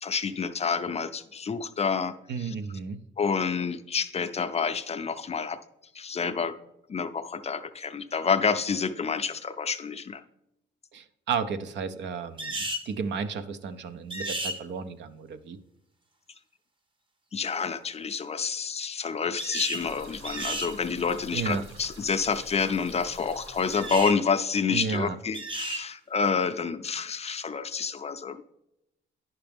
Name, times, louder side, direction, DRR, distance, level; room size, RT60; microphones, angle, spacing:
voice 1, 0.0-2.5 3.2-5.6 5.9-6.6 6.9-10.2 17.3-28.4, left 5 dB, 30° left, 9 dB, 0.5 m, -28 dB
voice 2, 2.3-3.0 10.9-15.6 21.3-21.6 24.7-25.2, right 5 dB, 65° right, 10 dB, 0.6 m, -33 dB
sound 1, 12.4-12.9 14.1-14.6 19.4-19.9 20.2-20.7 23.7-24.2 25.3-25.8, right 1 dB, 25° right, 0.8 m, -33 dB
sound 2, 19.7-24.1, right 1 dB, 80° right, 2.1 m, -47 dB
10.0 x 5.8 x 3.5 m, 0.85 s
cardioid pair, 90°, 20 cm